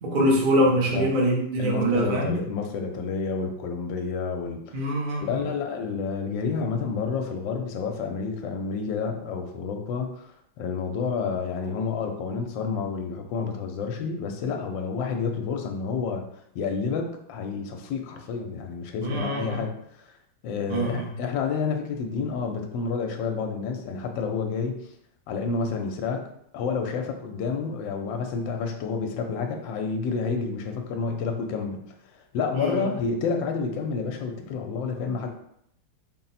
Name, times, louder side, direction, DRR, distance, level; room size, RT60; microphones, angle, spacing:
voice 1, 0.0-2.3 4.7-5.5 19.0-19.6 20.7-21.1 32.5-32.8, right 1 dB, 80° right, -2 dB, 0.4 m, -24 dB
voice 2, 1.6-4.9 5.2-16.3 16.5-20.1 20.4-24.8 25.3-26.3 26.5-35.3, left 5 dB, 75° left, 4 dB, 1.3 m, -29 dB
4.1 x 2.0 x 4.1 m, 0.73 s
omnidirectional pair, 2.1 m